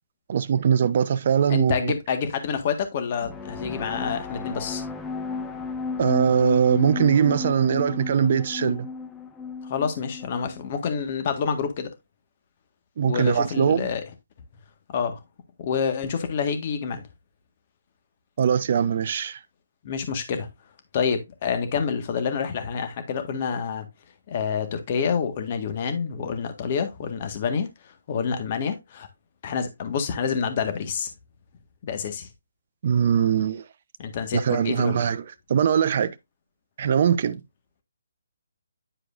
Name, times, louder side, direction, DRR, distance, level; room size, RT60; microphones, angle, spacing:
voice 1, 0.3-1.9 6.0-8.9 13.0-13.9 18.4-19.4 32.8-33.6 34.3-35.2 35.5-36.1 36.8-37.4, right 8 dB, 45° right, 0.7 m, -21 dB
voice 2, 1.5-4.8 9.7-11.9 13.0-14.0 14.9-15.2 15.6-17.1 19.8-20.5 20.9-23.8 24.3-29.1 29.4-31.1 31.8-32.3 34.0-35.0, left 6 dB, 40° left, 1.6 m, -28 dB
sound 1, 3.2-10.8, left 5 dB, 10° left, 0.8 m, -33 dB
10.0 x 4.8 x 2.6 m
hypercardioid pair, 150°, 0 cm